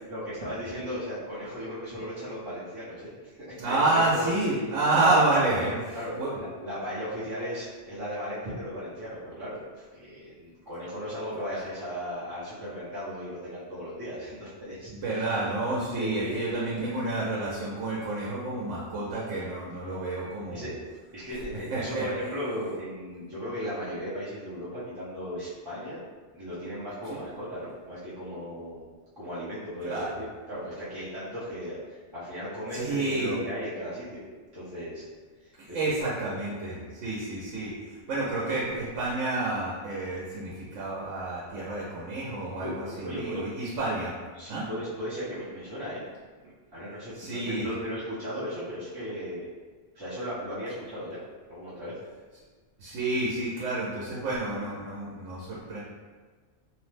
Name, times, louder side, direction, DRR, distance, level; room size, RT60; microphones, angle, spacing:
voice 1, 0.1-4.3 5.5-5.7 5.9-14.9 16.0-16.3 20.5-20.8 21.1-26.0 26.3-28.8 29.2-34.2 34.5-35.0 35.4-35.8 36.8-36.9 42.6-42.7 43.0-43.4 43.8-43.9 44.3-46.0 46.7-49.5 49.9-51.2 51.5-51.9, equal, 25° right, -11 dB, 0.5 m, -36 dB
voice 2, 3.6-5.7 6.2-6.4 14.9-20.7 21.5-22.1 27.0-27.2 29.8-30.2 32.7-33.3 35.6-44.1 44.5-44.7 47.1-47.7 52.8-55.8, right 2 dB, 90° right, -5 dB, 1.0 m, -29 dB
3.0 x 2.0 x 3.2 m, 1.4 s
omnidirectional pair, 1.2 m